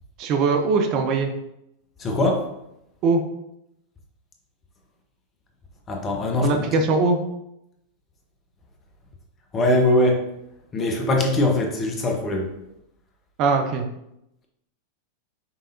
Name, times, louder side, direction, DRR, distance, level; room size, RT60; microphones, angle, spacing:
voice 1, 0.2-1.3 3.0-3.2 6.4-7.2 13.4-13.8, right 4 dB, 40° right, 4 dB, 0.5 m, -21 dB
voice 2, 2.0-2.5 5.9-6.7 9.5-10.3 10.7-12.5, left 1 dB, 25° left, 2 dB, 1.0 m, -21 dB
5.6 x 3.4 x 2.7 m, 0.83 s
figure-of-eight pair, 90°, 0 cm